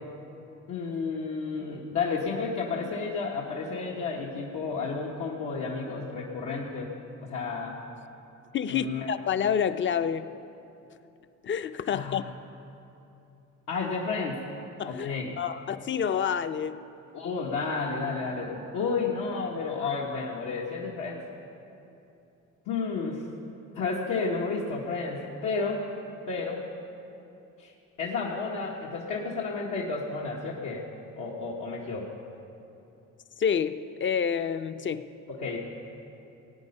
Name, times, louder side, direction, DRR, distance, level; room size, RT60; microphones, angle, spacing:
voice 1, 0.7-6.9 7.2-7.8 8.7-9.1 11.9-12.3 13.7-14.4 14.8-15.3 17.1-21.2 22.7-23.3 23.7-25.9 26.3-26.6 27.6-27.7 28.0-30.9 31.1-32.1 35.3-35.6, left 4 dB, 80° left, -4 dB, 1.4 m, -31 dB
voice 2, 8.5-10.3 11.4-12.2 14.8-16.8 33.4-35.1, left 7 dB, 40° left, 12 dB, 0.5 m, -28 dB
18.5 x 8.6 x 5.4 m, 2.9 s
cardioid pair, 90°, 30 cm